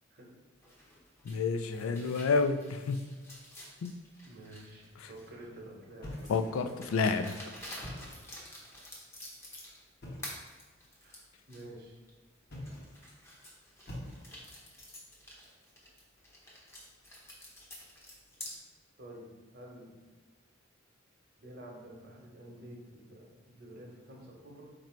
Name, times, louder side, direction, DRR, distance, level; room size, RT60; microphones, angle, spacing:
sound 1, 0.6-5.4 6.1-9.9 10.2-11.6 12.1-12.2 12.6-18.5, left 1 dB, 10° left, 0.7 m, -49 dB
voice 1, 1.2-3.0 3.8-4.0 6.3-7.3, left 4 dB, 85° left, 9 dB, 0.3 m, -29 dB
voice 2, 1.8-2.2 4.2-6.3 11.0-12.0 19.0-19.3 19.5-19.9 21.4-24.6, right 1 dB, 50° right, -1 dB, 0.9 m, -50 dB
sound 2, 6.0-6.8 7.7-8.4 10.0-10.5 12.4-13.1 13.9-14.6, left 1 dB, 45° left, 0.9 m, -45 dB
4.3 x 2.6 x 4.4 m, 1.3 s
head